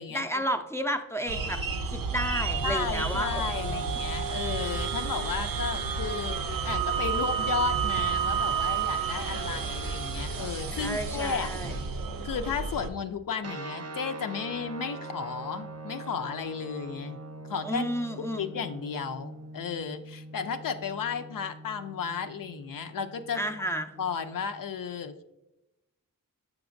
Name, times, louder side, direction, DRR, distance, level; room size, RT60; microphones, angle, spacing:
voice 1, 0.1-4.0 4.6-4.8 10.7-11.8 17.6-18.5 23.3-23.9, equal, 10° left, 5 dB, 0.4 m, -32 dB
sound 1, 1.3-12.9, right 5 dB, 90° right, 0.6 m, -30 dB
voice 2, 2.6-11.5 12.2-17.2 17.5-17.9 18.2-23.4 24.0-25.3, left 6 dB, 75° left, 7 dB, 0.5 m, -34 dB
sound 2, 13.4-24.6, right 2 dB, 45° right, 0.6 m, -43 dB
7.1 x 5.9 x 2.5 m, 0.95 s
wide cardioid pair, 80°, 33 cm